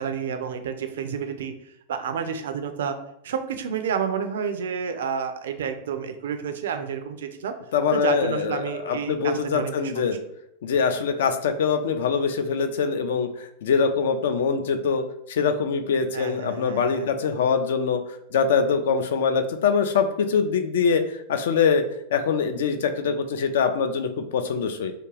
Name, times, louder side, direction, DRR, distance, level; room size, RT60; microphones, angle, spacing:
voice 1, 0.0-3.0 3.2-7.5 7.9-10.0 16.1-17.1, right 7 dB, 60° right, 8 dB, 0.3 m, -30 dB
voice 2, 7.7-10.2 10.6-18.0 18.3-21.8 22.1-24.9, left 6 dB, 60° left, 8 dB, 0.3 m, -23 dB
2.4 x 2.3 x 3.1 m, 0.78 s
figure-of-eight pair, 90°, 0 cm